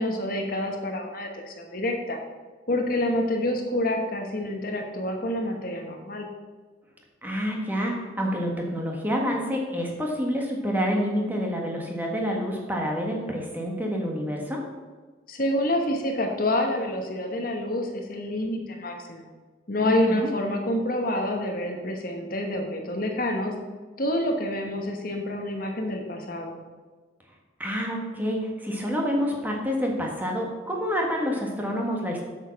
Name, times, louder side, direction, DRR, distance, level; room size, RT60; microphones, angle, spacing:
voice 1, 0.0-2.2 2.7-6.3 15.3-19.3 19.7-23.5 24.0-26.6, left 1 dB, 45° left, 3 dB, 1.2 m, -27 dB
voice 2, 7.2-14.6 19.8-20.3 27.6-32.2, equal, 10° right, 0 dB, 1.5 m, -28 dB
8.1 x 7.3 x 5.8 m, 1.4 s
head